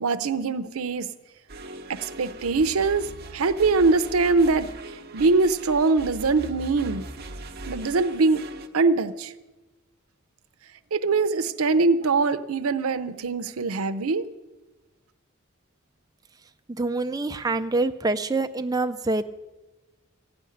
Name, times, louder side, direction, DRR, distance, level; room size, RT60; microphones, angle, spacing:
voice 1, 0.0-1.1 1.9-3.1 3.3-4.7 5.1-7.1 7.7-8.4 8.7-9.3 10.9-14.2, right 3 dB, 85° right, 10 dB, 0.7 m, -22 dB
sound 1, 1.5-8.7, right 2 dB, 45° right, 1.0 m, -40 dB
voice 2, 16.4-19.2, right 2 dB, 15° right, 8 dB, 0.5 m, -26 dB
15.0 x 7.0 x 9.9 m, 1.1 s
head